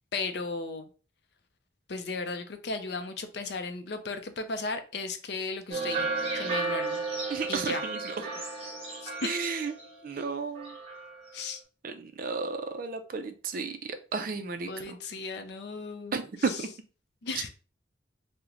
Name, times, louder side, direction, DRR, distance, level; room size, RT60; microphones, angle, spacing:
voice 1, 0.1-0.9 1.9-7.0 7.5-7.9 9.0-9.3 11.3-11.6 14.7-16.7 17.2-17.5, left 3 dB, 60° left, 0.5 m, -36 dB
sound 1, 5.7-10.3 10.5-11.3, right 3 dB, 30° right, 1.0 m, -34 dB
voice 2, 7.3-8.0 9.2-9.7 10.0-10.8 11.8-15.0 16.1-16.7, right 4 dB, 45° right, 0.4 m, -33 dB
2.9 x 2.1 x 3.7 m
head